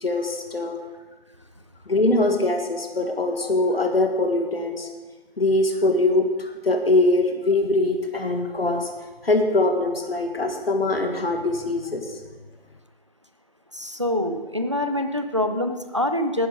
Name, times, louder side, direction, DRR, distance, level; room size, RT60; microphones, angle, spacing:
voice 1, 0.0-0.8 1.9-4.9 5.4-8.9 9.2-12.0, left 2 dB, 70° left, 4 dB, 1.7 m, -22 dB
voice 2, 13.7-16.5, left 1 dB, 30° right, 8 dB, 0.6 m, -25 dB
12.0 x 10.0 x 5.0 m, 1.3 s
figure-of-eight pair, 175°, 31 cm